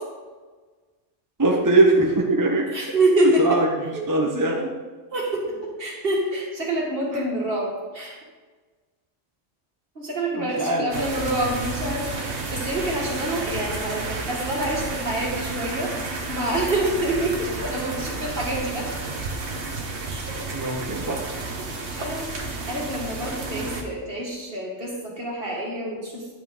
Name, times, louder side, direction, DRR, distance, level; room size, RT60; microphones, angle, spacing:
voice 1, 1.4-2.7 3.4-4.7 7.1-7.2 10.3-11.1 20.5-21.2, right 2 dB, 20° right, -1 dB, 0.8 m, -22 dB
voice 2, 2.7-3.4 3.9-4.0 5.1-5.4 5.8-8.2 10.0-15.9 16.3-18.9 20.1-20.3 22.0-26.3, right 1 dB, 50° right, -4 dB, 2.3 m, -26 dB
sound 1, 10.9-23.8, right 3 dB, 65° right, 1.3 m, -31 dB
10.0 x 5.6 x 4.9 m, 1.4 s
omnidirectional pair, 1.3 m